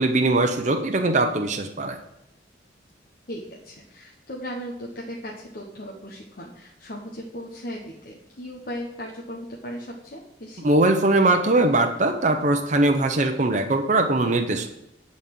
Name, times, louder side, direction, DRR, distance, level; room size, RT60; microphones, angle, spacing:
voice 1, 0.0-2.0 10.6-14.7, right 2 dB, 40° right, 4 dB, 0.7 m, -21 dB
voice 2, 3.3-10.7, equal, 50° left, -2 dB, 1.2 m, -37 dB
11.0 x 4.2 x 7.6 m, 0.84 s
head